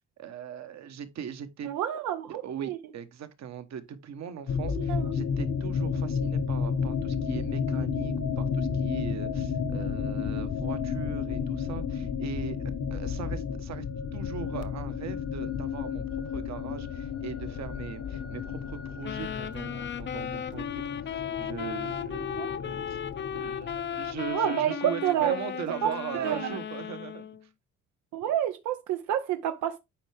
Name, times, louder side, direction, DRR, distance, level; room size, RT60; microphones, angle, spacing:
voice 1, 0.2-1.7 2.3-12.6 12.9-13.9 14.1-16.0 16.3-23.0 23.3-23.7 24.0-27.3, right 8 dB, 65° right, 1.1 m, -40 dB
voice 2, 1.6-2.8 4.9-5.1 22.4-22.6 24.3-25.4 25.8-26.6 28.1-29.8, right 10 dB, 90° right, 0.6 m, -29 dB
sound 1, 4.5-24.3, left 6 dB, 55° left, 1.0 m, -32 dB
sound 2, 19.0-27.4, left 8 dB, 40° left, 0.5 m, -36 dB
8.9 x 4.5 x 3.4 m
cardioid pair, 90°, 30 cm